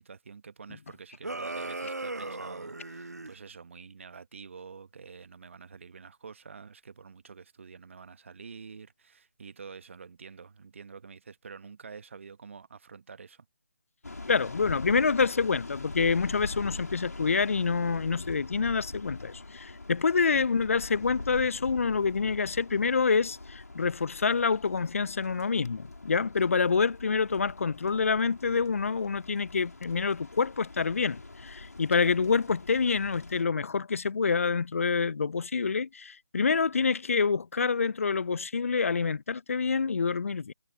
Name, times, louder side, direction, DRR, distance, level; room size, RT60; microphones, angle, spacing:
voice 1, 0.0-13.5 20.3-20.5 31.9-32.2, right 5 dB, 50° right, 1.3 m, -47 dB
sound 1, 1.2-3.4, right 2 dB, 85° right, 1.0 m, -37 dB
sound 2, 14.0-33.4, left 2 dB, 80° left, 3.4 m, -43 dB
voice 2, 14.3-40.5, left 5 dB, 55° left, 0.5 m, -27 dB
figure-of-eight pair, 155°, 9 cm